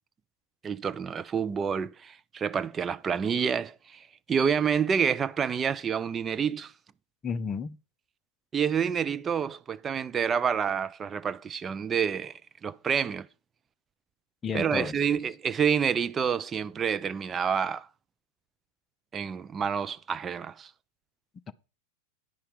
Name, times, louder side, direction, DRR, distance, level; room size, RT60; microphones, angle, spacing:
voice 1, 0.6-6.7 8.5-13.3 14.5-17.9 19.1-20.7, right 7 dB, 20° right, 0.4 m, -28 dB
voice 2, 7.2-7.7 14.4-15.2 21.5-21.6, left 6 dB, 20° left, 0.7 m, -32 dB
10.0 x 5.7 x 5.0 m
figure-of-eight pair, 90°, 0 cm